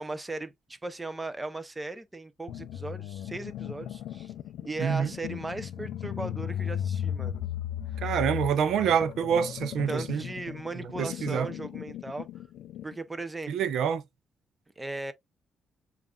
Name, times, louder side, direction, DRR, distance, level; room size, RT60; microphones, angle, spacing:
voice 1, 0.0-4.3 4.6-7.5 9.9-12.3 12.8-13.7 14.8-15.1, right 2 dB, 10° right, 0.5 m, -37 dB
sound 1, 2.5-13.0, left 10 dB, 80° left, 0.4 m, -36 dB
voice 2, 4.8-5.1 8.0-10.2 11.0-11.5 13.5-14.0, right 8 dB, 65° right, 0.5 m, -26 dB
7.1 x 2.4 x 2.3 m
cardioid pair, 165°, 0 cm